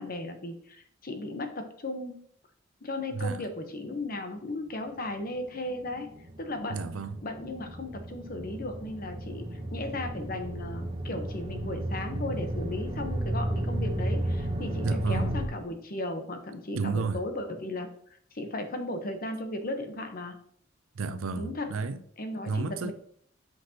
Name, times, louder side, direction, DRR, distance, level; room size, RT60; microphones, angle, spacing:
voice 1, 0.0-2.2 2.8-6.1 6.4-6.8 7.2-17.9 18.3-20.4 21.4-21.7 22.2-22.9, left 2 dB, 45° left, 1.0 m, -36 dB
voice 2, 3.1-3.4 6.7-7.2 14.8-15.3 16.7-17.2 20.9-22.0 22.4-22.9, right 4 dB, 90° right, 0.5 m, -31 dB
sound 1, 5.1-15.5, right 1 dB, 30° right, 0.8 m, -33 dB
7.9 x 5.9 x 2.9 m
head